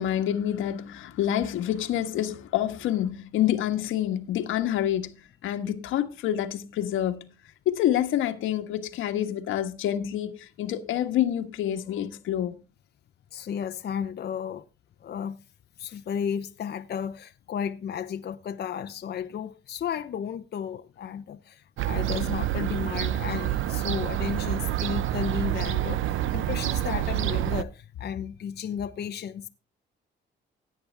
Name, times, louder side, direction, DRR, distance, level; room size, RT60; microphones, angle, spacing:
voice 1, 0.0-7.3 7.6-12.6, left 11 dB, 85° left, 1.4 m, -27 dB
voice 2, 13.3-14.6 15.0-15.4 15.8-29.5, left 8 dB, 55° left, 0.9 m, -33 dB
Fowl / Gull seagull, 21.8-27.6, right 13 dB, 80° right, 0.7 m, -27 dB
16.5 x 8.7 x 3.5 m
cardioid pair, 90°, 20 cm